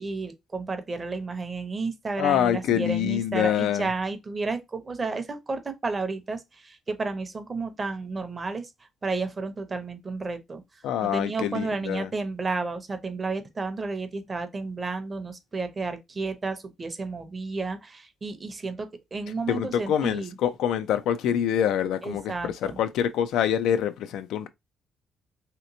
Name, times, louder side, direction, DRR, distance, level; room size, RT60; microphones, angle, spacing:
voice 1, 0.0-8.7 9.0-10.6 11.0-20.3 22.0-22.8, right 3 dB, 25° right, 0.6 m, -32 dB
voice 2, 2.2-3.9 10.8-12.1 19.5-24.5, left 9 dB, 90° left, 0.3 m, -25 dB
3.2 x 2.9 x 2.6 m
cardioid pair, 140°, 0 cm